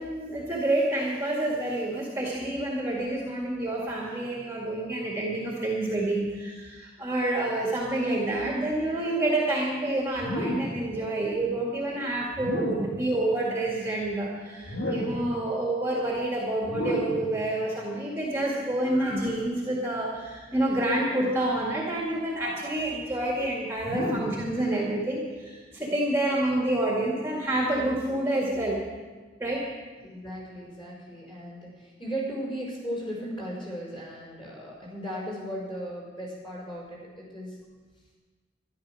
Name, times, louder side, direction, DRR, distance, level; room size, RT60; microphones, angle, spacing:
voice 1, 0.0-28.8 29.4-29.7, right 1 dB, 15° right, -3 dB, 1.9 m, -28 dB
sound 1, 10.2-10.9 12.3-13.0 14.6-15.3 16.6-17.3 18.9-19.3 20.7-21.2 22.3-22.7 23.8-24.5, left 1 dB, 80° left, 2.2 m, -32 dB
voice 2, 30.0-37.6, equal, 25° left, -5 dB, 5.6 m, -36 dB
13.0 x 11.5 x 6.3 m, 1.4 s
head